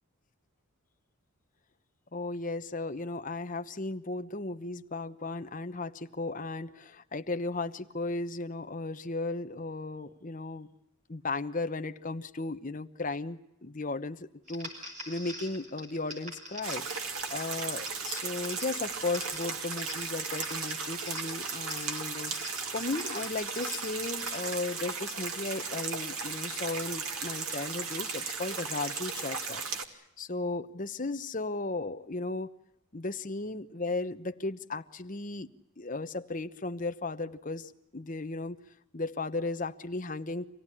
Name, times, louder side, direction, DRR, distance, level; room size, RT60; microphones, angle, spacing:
voice 1, 2.1-10.7 11.1-16.9 17.3-29.6 29.9-32.5 32.9-35.5 35.8-38.6 38.9-40.5, left 3 dB, 35° left, 9 dB, 1.0 m, -35 dB
sound 1, 14.5-24.7, equal, 35° right, 6.4 m, -45 dB
sound 2, 16.6-29.8, right 5 dB, 80° right, 2.6 m, -36 dB
26.5 x 17.5 x 9.9 m, 0.85 s
head